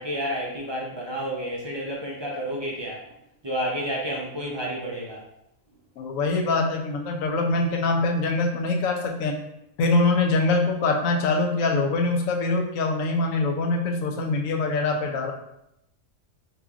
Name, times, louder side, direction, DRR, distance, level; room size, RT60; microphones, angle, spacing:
voice 1, 0.0-3.1 3.4-5.2, equal, 40° right, -3 dB, 0.4 m, -30 dB
voice 2, 6.0-9.4 9.8-15.3, left 3 dB, 85° left, 3 dB, 1.0 m, -24 dB
4.9 x 2.9 x 2.3 m, 0.80 s
omnidirectional pair, 1.3 m